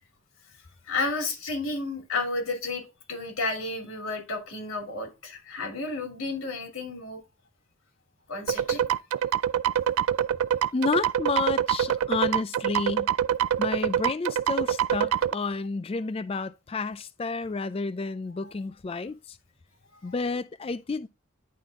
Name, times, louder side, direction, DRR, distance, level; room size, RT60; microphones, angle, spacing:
voice 1, 0.9-2.8 3.1-7.2 8.3-8.8, left 3 dB, 80° left, 2.8 m, -31 dB
sound 1, 8.5-15.3, right 10 dB, 85° right, 0.3 m, -25 dB
voice 2, 10.7-13.1 13.6-19.4 20.0-21.1, left 4 dB, 25° left, 0.3 m, -30 dB
10.5 x 3.8 x 3.5 m
head